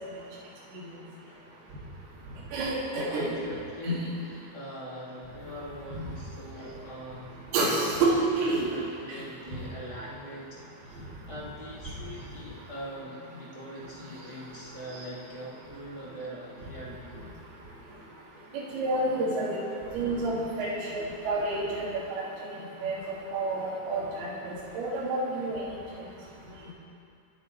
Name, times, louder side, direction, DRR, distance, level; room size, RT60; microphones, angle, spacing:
voice 1, 1.2-1.7 2.9-4.1 4.5-7.8 8.0-17.1, equal, 45° right, -7 dB, 0.4 m, -43 dB
voice 2, 2.5-3.3 3.8-4.0 5.9-6.0 7.5-8.7 18.5-19.6 19.9-21.8 22.8-23.0 23.3-25.6, right 2 dB, 70° right, -6 dB, 4.1 m, -28 dB
25.5 x 8.8 x 4.6 m, 2.5 s
omnidirectional pair, 4.8 m